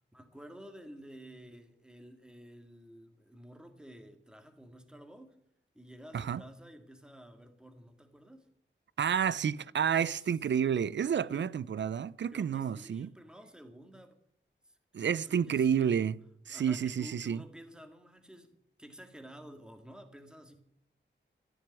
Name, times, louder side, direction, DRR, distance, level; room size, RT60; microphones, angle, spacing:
voice 1, 0.1-5.4 5.7-8.5 10.0-10.6 11.3-11.5 12.3-14.2 14.6-16.1 16.5-20.6, equal, 5° right, 2.0 m, -51 dB
voice 2, 9.0-13.1 14.9-16.1 16.5-17.4, right 8 dB, 70° right, 0.5 m, -30 dB
14.0 x 7.0 x 9.6 m
wide cardioid pair, 125°, 20 cm